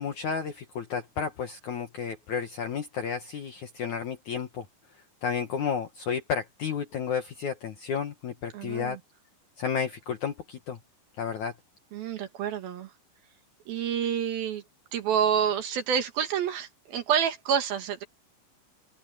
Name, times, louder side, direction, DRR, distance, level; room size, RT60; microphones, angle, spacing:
voice 1, 0.0-4.6 5.2-9.0 9.6-10.8 11.2-11.5, left 7 dB, 65° left, 2.0 m, -32 dB
voice 2, 8.5-9.0 11.9-12.9 13.7-14.6 14.9-18.0, right 8 dB, 65° right, 3.1 m, -28 dB
open air
omnidirectional pair, 5.1 m